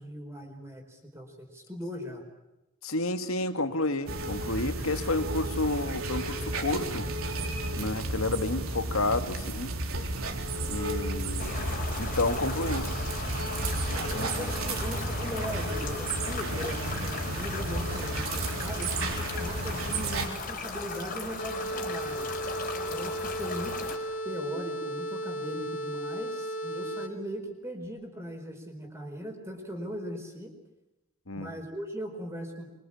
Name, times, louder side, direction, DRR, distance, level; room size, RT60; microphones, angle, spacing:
voice 1, 0.0-2.3 13.9-22.3 22.9-23.9 24.2-30.5 31.3-32.7, equal, 15° right, 2 dB, 4.7 m, -39 dB
voice 2, 2.8-7.1 7.7-9.7 10.7-11.6 12.0-12.9 13.9-14.5 31.3-31.5, left 2 dB, 85° left, 9 dB, 2.1 m, -30 dB
sound 1, 4.1-20.3, right 2 dB, 80° right, 3.9 m, -32 dB
sound 2, 11.4-24.0, left 3 dB, 40° left, 4.8 m, -37 dB
sound 3, 21.4-27.3, right 1 dB, 65° left, 2.9 m, -35 dB
25.5 x 24.5 x 8.8 m, 0.97 s
head